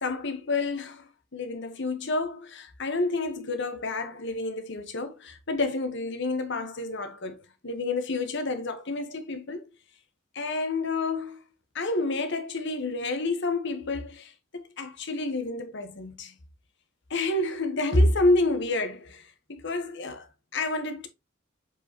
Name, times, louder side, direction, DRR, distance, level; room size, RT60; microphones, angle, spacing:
voice 1, 0.0-9.7 10.3-11.4 11.7-16.3 17.1-20.3 20.5-21.1, left 2 dB, 60° left, 1.3 m, -29 dB
7.7 x 4.7 x 3.0 m
head